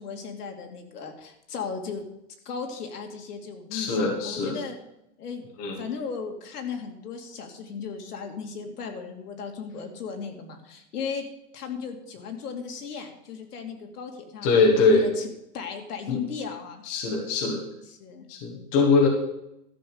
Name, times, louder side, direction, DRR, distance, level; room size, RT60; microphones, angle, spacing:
voice 1, 0.0-2.0 2.4-4.8 5.2-5.5 5.8-11.3 11.5-14.5 14.9-16.8 17.8-18.3, left 5 dB, 70° left, 4 dB, 2.4 m, -36 dB
voice 2, 3.7-4.6 5.6-5.8 14.4-15.0 16.1-16.2 16.9-17.6 18.3-19.1, left 4 dB, 20° left, 0 dB, 1.4 m, -22 dB
13.0 x 6.4 x 7.0 m, 0.84 s
supercardioid pair, 180°, 47 cm